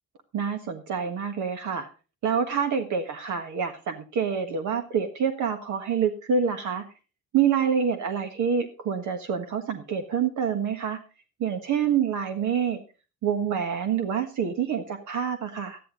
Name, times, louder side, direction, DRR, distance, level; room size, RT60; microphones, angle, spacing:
voice 1, 0.3-1.9 2.2-6.8 7.3-11.0 11.4-12.8 13.2-15.8, right 7 dB, 75° right, 6 dB, 1.6 m, -27 dB
12.5 x 10.5 x 3.8 m, 0.32 s
cardioid pair, 90°, 30 cm